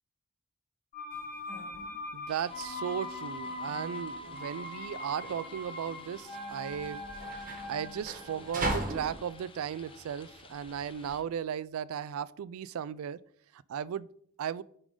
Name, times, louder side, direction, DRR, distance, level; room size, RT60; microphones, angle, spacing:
sound 1, 0.9-10.7 10.9-11.0, left 2 dB, 40° left, 1.8 m, -42 dB
sound 2, 1.1-11.2, right 2 dB, 40° right, 1.3 m, -40 dB
voice 1, 2.1-7.0 7.7-13.2 13.5-14.1 14.4-14.6, right 8 dB, 70° right, 0.3 m, -36 dB
sound 3, 2.3-11.2, left 4 dB, 25° left, 0.6 m, -54 dB
8.8 x 3.8 x 4.8 m
head